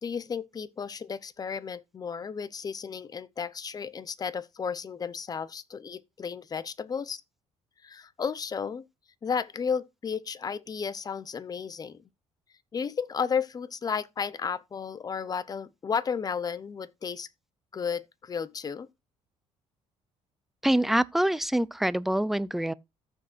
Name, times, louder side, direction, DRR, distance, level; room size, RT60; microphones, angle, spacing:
voice 1, 0.0-7.2 7.8-8.9 9.2-12.0 12.7-17.3 17.7-18.9, left 6 dB, 30° left, 0.7 m, -33 dB
voice 2, 20.6-22.7, right 1 dB, ahead, 0.4 m, -25 dB
14.5 x 6.3 x 2.5 m
cardioid pair, 110°, 12 cm